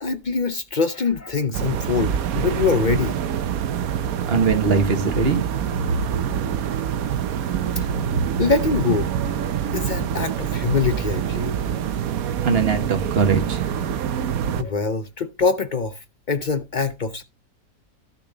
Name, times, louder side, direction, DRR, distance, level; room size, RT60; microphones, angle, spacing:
voice 1, 0.0-3.2 7.3-7.5 7.8-8.0 8.4-9.4 9.7-11.9 14.6-17.2, left 5 dB, 55° left, 0.5 m, -24 dB
sound 1, 1.5-14.6, right 8 dB, 70° right, 1.2 m, -25 dB
voice 2, 4.3-5.4 12.4-13.6, right 4 dB, 40° right, 1.6 m, -21 dB
12.5 x 6.7 x 3.9 m
omnidirectional pair, 1.6 m